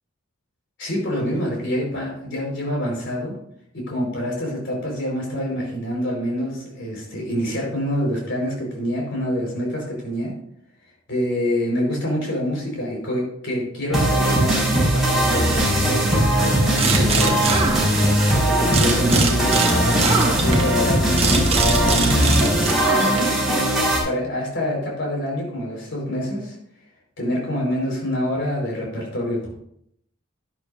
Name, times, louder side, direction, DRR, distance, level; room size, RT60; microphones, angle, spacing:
voice 1, 0.8-3.4 3.7-10.3 11.1-17.4 18.3-23.3 24.0-26.6 27.2-29.5, equal, 60° left, -2 dB, 5.0 m, -26 dB
sound 1, 13.9-24.0, equal, ahead, 4.9 m, -19 dB
sound 2, 16.8-18.3 18.7-23.4, right 4 dB, 30° right, 1.4 m, -23 dB
11.5 x 11.0 x 2.7 m, 0.72 s
head